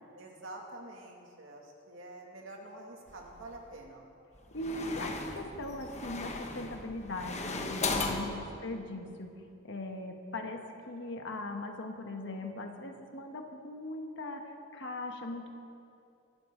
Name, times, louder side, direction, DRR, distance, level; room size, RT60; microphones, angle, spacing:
voice 1, 0.1-4.1 8.4-8.8, right 1 dB, 70° right, 0 dB, 2.5 m, -48 dB
sound 1, 3.1-3.7 4.3-8.3, left 3 dB, 35° left, 1.2 m, -37 dB
voice 2, 4.5-9.3 9.6-15.5, left 2 dB, 65° left, 3 dB, 1.4 m, -40 dB
24.0 x 12.5 x 3.9 m, 2.6 s
head